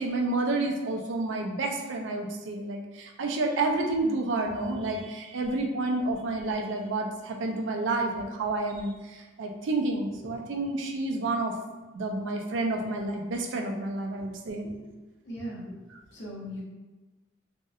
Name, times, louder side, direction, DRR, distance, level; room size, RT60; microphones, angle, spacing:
voice 1, 0.0-11.5 11.9-14.7, right 2 dB, 75° right, 2 dB, 0.4 m, -30 dB
voice 2, 14.6-14.9 15.2-15.8 16.1-16.6, equal, 65° left, -4 dB, 0.7 m, -39 dB
2.7 x 2.0 x 2.3 m, 1.2 s
head